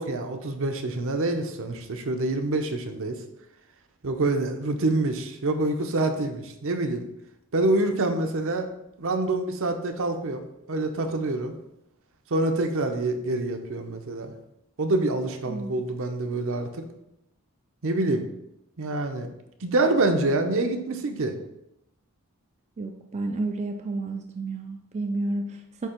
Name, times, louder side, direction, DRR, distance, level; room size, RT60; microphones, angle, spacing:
voice 1, 0.0-3.2 4.0-7.0 7.5-8.7 9.0-10.4 10.7-11.5 12.3-14.3 14.8-16.7 17.8-18.2 18.8-19.3 19.6-21.3, right 2 dB, 65° right, 6 dB, 0.7 m, -26 dB
voice 2, 15.5-15.8 22.8-25.9, right 2 dB, 30° right, 4 dB, 0.4 m, -31 dB
8.3 x 2.9 x 4.4 m, 0.85 s
head